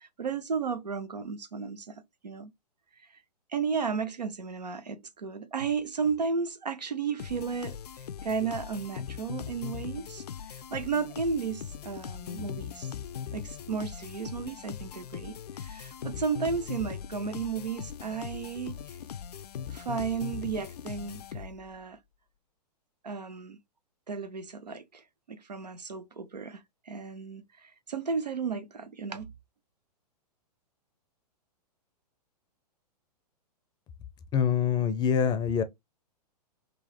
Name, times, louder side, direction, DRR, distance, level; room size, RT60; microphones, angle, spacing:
voice 1, 0.0-1.9 2.2-2.5 3.5-7.8 8.2-12.9 13.3-18.7 19.7-22.0 23.0-23.6 24.1-29.3, right 5 dB, 85° right, 0.7 m, -34 dB
sound 1, 7.2-21.8, left 8 dB, 70° left, 0.4 m, -40 dB
voice 2, 34.3-35.6, left 7 dB, 20° left, 0.5 m, -25 dB
3.9 x 2.4 x 3.0 m
figure-of-eight pair, 110°, 21 cm